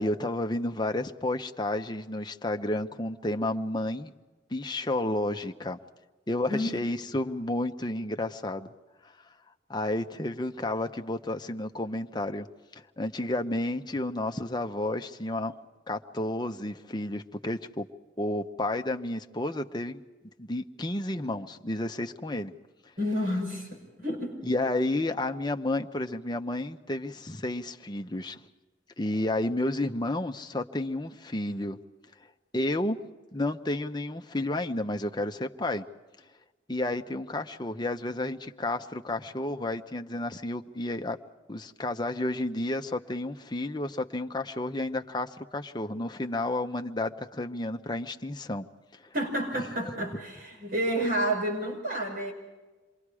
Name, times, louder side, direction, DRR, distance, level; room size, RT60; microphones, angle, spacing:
voice 1, 0.0-4.1 4.5-5.8 6.3-8.7 9.7-12.5 13.0-15.5 15.9-17.9 18.2-20.0 20.4-22.5 24.4-28.4 29.0-31.8 32.5-33.0 33.3-35.8 36.7-41.2 41.5-48.7, left 1 dB, 25° left, 0.9 m, -31 dB
voice 2, 23.0-24.4 49.1-52.3, equal, 50° right, 5.7 m, -30 dB
28.0 x 23.0 x 4.9 m
head